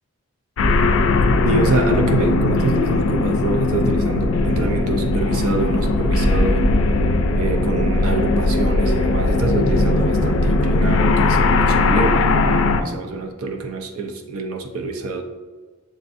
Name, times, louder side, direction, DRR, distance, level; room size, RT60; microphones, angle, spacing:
sound 1, 0.6-12.8, left 2 dB, 60° left, 0.3 m, -18 dB
voice 1, 1.4-6.7 7.3-15.2, right 3 dB, 75° right, 4 dB, 0.5 m, -25 dB
7.5 x 2.5 x 2.4 m, 1.4 s
head